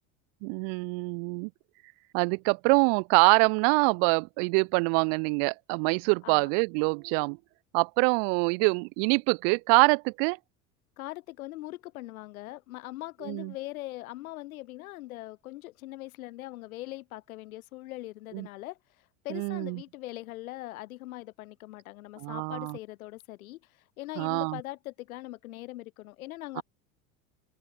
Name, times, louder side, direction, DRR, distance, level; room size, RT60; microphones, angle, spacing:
voice 1, 0.4-1.5 2.1-7.4 7.7-10.4 13.3-13.5 18.3-18.5 19.3-19.8 22.2-22.8 24.2-24.6 26.6-26.7, right 40 dB or more, 55° right, 0.4 m, -25 dB
voice 2, 11.0-18.8 19.2-23.6 24.0-26.6, left 17 dB, 80° left, 2.2 m, -41 dB
hypercardioid pair, 90°, 42 cm